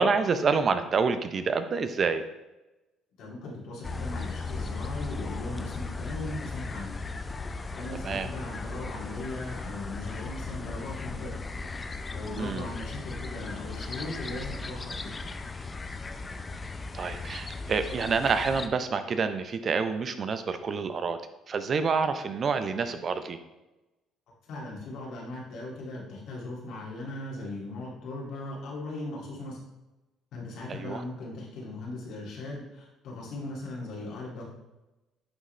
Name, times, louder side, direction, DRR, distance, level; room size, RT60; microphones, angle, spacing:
voice 1, 0.0-2.2 8.0-8.3 12.4-12.7 16.9-21.2 21.5-23.4 30.7-31.0, right 5 dB, 45° right, 10 dB, 0.5 m, -27 dB
voice 2, 3.2-6.9 7.7-11.3 12.1-15.1 24.5-29.6 30.3-34.5, left 2 dB, 70° left, -3 dB, 2.2 m, -38 dB
sound 1, 3.8-18.7, left 3 dB, 25° left, 0.5 m, -37 dB
9.7 x 3.7 x 3.2 m, 1.0 s
cardioid pair, 90°, 0 cm